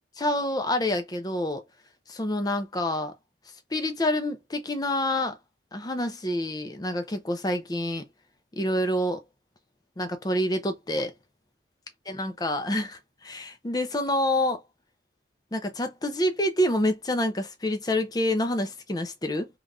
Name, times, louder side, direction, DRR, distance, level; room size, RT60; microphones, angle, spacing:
voice 1, 0.2-1.6 2.1-3.1 3.7-5.4 5.7-8.0 8.6-9.2 10.0-11.1 12.1-14.6 15.5-19.5, left 1 dB, 20° left, 0.5 m, -27 dB
3.3 x 2.4 x 2.4 m
head